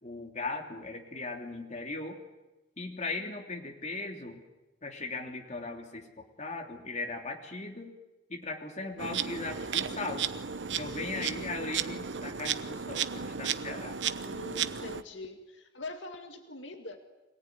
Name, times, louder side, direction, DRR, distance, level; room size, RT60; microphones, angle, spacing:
voice 1, 0.0-2.2 2.8-4.4 4.8-7.9 8.3-10.3 10.8-14.0, left 3 dB, 40° left, 2 dB, 3.2 m, -38 dB
Insect, 9.0-15.0, right 7 dB, 75° right, 1.0 m, -34 dB
voice 2, 10.9-11.4 14.2-17.0, left 2 dB, 85° left, 5 dB, 2.2 m, -43 dB
25.0 x 18.5 x 9.6 m, 1.0 s
head